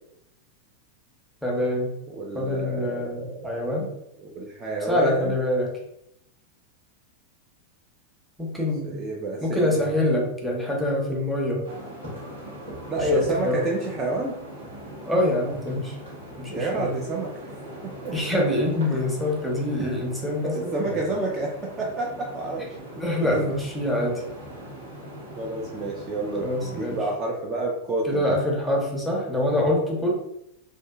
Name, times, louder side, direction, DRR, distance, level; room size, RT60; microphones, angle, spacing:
voice 1, 1.4-1.9 2.3-3.9 4.9-5.7 8.4-8.9 9.4-11.7 12.9-13.6 15.1-15.9 16.4-16.9 18.1-21.0 23.0-24.2 26.4-27.0 28.0-30.1, left 1 dB, ahead, -2 dB, 0.7 m, -25 dB
voice 2, 2.1-3.7 4.2-5.3 8.8-9.9 12.9-14.4 16.5-18.2 18.9-19.0 20.4-22.7 23.2-23.3 25.4-28.4, right 2 dB, 25° right, -2 dB, 0.4 m, -29 dB
sound 1, 11.6-27.0, right 1 dB, 65° right, 1.0 m, -40 dB
2.6 x 2.3 x 2.3 m, 0.79 s
figure-of-eight pair, 90°, 0 cm